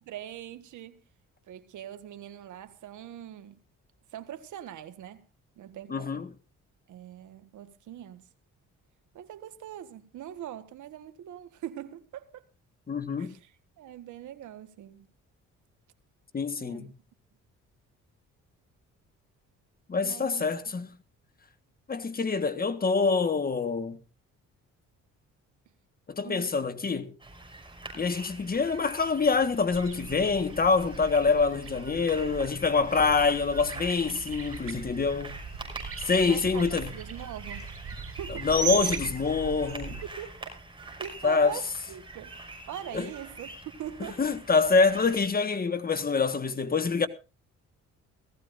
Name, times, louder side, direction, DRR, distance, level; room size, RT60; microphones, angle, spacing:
voice 1, 0.0-1.0 1.5-3.6 4.1-5.3 5.6-6.3 6.9-8.3 9.1-12.4 13.2-13.5 13.8-15.1 16.6-16.9 20.0-20.5 26.2-26.6 36.2-36.6 36.9-37.7 38.2-38.5 40.2-40.4 41.0-42.3 42.6-44.2, right 11 dB, 75° right, 1.5 m, -42 dB
voice 2, 5.9-6.3 12.9-13.3 16.3-16.9 19.9-20.9 21.9-24.0 26.1-27.1 27.9-35.4 36.0-36.9 38.4-40.0 41.2-41.6 42.9-43.1 44.2-47.1, left 4 dB, 30° left, 1.6 m, -26 dB
sound 1, 27.2-45.3, right 2 dB, 15° right, 6.2 m, -45 dB
sound 2, 29.7-40.1, right 5 dB, 45° right, 5.9 m, -38 dB
18.0 x 15.0 x 2.6 m
cardioid pair, 90°, 30 cm